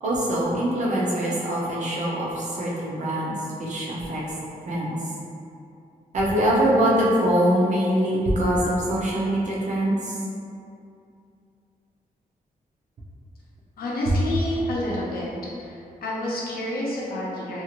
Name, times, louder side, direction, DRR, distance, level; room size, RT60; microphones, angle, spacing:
voice 1, 0.0-4.2 4.7-5.1 6.1-10.2, right 1 dB, 55° right, -6 dB, 0.6 m, -23 dB
voice 2, 13.8-15.3 15.6-17.6, left 1 dB, 85° left, -5 dB, 0.6 m, -29 dB
2.7 x 2.4 x 3.0 m, 2.6 s
wide cardioid pair, 175°, 15 cm